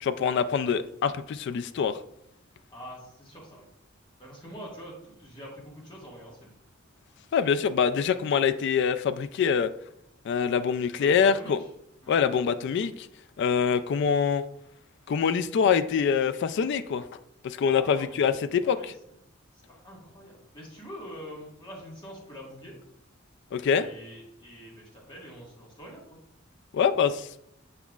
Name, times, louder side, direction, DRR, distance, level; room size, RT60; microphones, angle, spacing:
voice 1, 0.0-2.0 7.3-9.7 10.3-11.6 12.1-13.1 13.4-14.4 15.1-17.1 17.4-18.8 23.5-23.9 26.7-27.3, left 6 dB, 60° left, 12 dB, 0.3 m, -25 dB
voice 2, 2.7-3.7 4.2-6.5 11.0-11.5 12.0-12.2 17.7-18.9 19.7-22.8 23.7-26.2, equal, 25° left, -4 dB, 1.6 m, -45 dB
7.1 x 5.7 x 2.4 m, 0.77 s
head